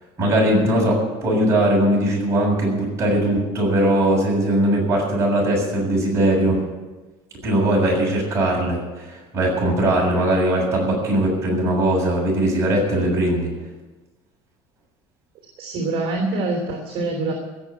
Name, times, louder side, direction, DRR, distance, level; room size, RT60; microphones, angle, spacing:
voice 1, 0.2-6.6 7.4-13.5, right 1 dB, 25° right, -3 dB, 7.0 m, -20 dB
voice 2, 15.6-17.3, right 2 dB, 45° right, 2 dB, 3.1 m, -25 dB
17.0 x 7.3 x 9.5 m, 1.2 s
cardioid pair, 150°, 12 cm